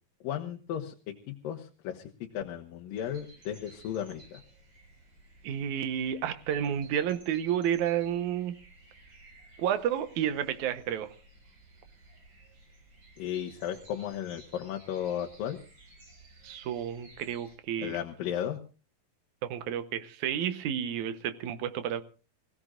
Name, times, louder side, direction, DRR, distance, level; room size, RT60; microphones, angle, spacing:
voice 1, 0.2-4.4 13.2-15.6 17.8-18.6, left 10 dB, 90° left, 2.8 m, -35 dB
sound 1, 2.9-17.6, right 2 dB, 40° right, 6.2 m, -56 dB
voice 2, 5.4-8.5 9.6-11.2 16.4-18.0 19.5-22.0, right 9 dB, 70° right, 2.3 m, -31 dB
27.0 x 16.0 x 2.5 m
omnidirectional pair, 3.9 m